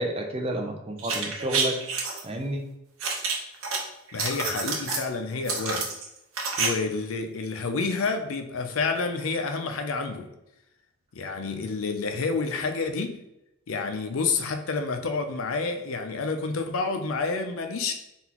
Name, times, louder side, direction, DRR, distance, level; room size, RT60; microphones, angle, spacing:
voice 1, 0.0-1.8 2.2-2.6, right 1 dB, 25° right, 3 dB, 0.5 m, -30 dB
sound 1, 1.0-2.2 3.0-3.8 4.1-5.0 5.5-6.7 6.9-7.0, right 4 dB, 80° right, 0.9 m, -28 dB
voice 2, 4.1-5.9 6.6-10.3 11.1-13.2 13.7-17.9, left 4 dB, 75° left, 7 dB, 0.5 m, -29 dB
4.0 x 3.6 x 2.9 m, 0.88 s
head